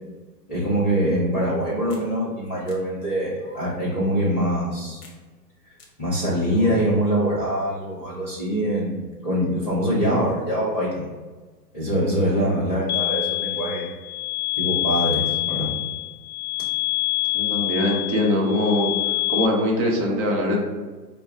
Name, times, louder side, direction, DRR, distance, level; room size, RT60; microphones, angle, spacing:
voice 1, 0.5-5.0 6.0-11.1 11.7-13.9 14.6-15.7, equal, 10° left, -16 dB, 0.3 m, -24 dB
sound 1, 1.9-2.1 2.7-2.8 3.4-3.9 5.0-5.2 5.8-5.9 6.5-7.1, left 2 dB, 40° left, 0.8 m, -42 dB
voice 2, 12.0-12.5 17.3-18.9 19.3-20.6, left 1 dB, 25° right, -1 dB, 0.8 m, -22 dB
sound 2, 12.9-19.5, left 20 dB, 65° left, 0.6 m, -26 dB
4.2 x 2.2 x 3.4 m, 1.3 s
hypercardioid pair, 120°, 49 cm